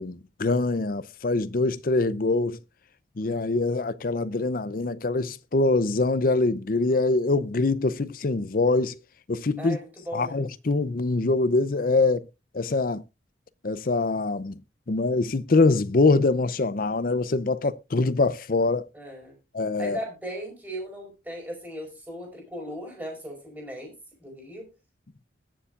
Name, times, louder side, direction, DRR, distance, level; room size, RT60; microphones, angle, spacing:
voice 1, 0.0-2.6 3.2-9.0 9.3-9.8 10.1-12.2 12.5-13.0 13.6-14.6 14.9-18.9 19.5-20.0, left 3 dB, 50° left, 0.6 m, -24 dB
voice 2, 9.6-10.4 18.9-19.4 19.8-23.9 24.2-24.7, equal, 10° right, 4.8 m, -37 dB
21.0 x 7.1 x 2.4 m
head